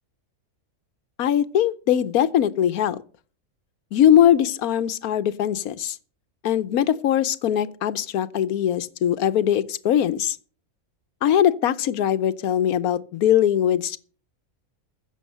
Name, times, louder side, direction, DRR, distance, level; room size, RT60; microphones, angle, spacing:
voice 1, 1.2-3.0 3.9-6.0 6.4-10.4 11.2-14.0, left 10 dB, 85° left, 1.2 m, -21 dB
15.0 x 7.1 x 6.6 m
omnidirectional pair, 1.5 m